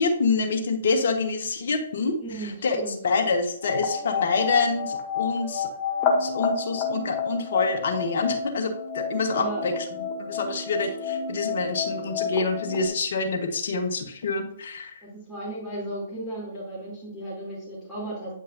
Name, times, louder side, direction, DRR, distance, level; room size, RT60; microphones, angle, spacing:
voice 1, 0.0-5.7 6.2-9.7 10.2-14.9, left 4 dB, 60° left, 6 dB, 1.2 m, -26 dB
voice 2, 2.2-2.9 9.3-9.6 15.0-18.3, right 1 dB, ahead, -14 dB, 2.8 m, -35 dB
sound 1, 3.6-12.9, left 5 dB, 30° left, 1.2 m, -30 dB
8.9 x 5.3 x 2.7 m, 0.67 s
figure-of-eight pair, 125°, 0 cm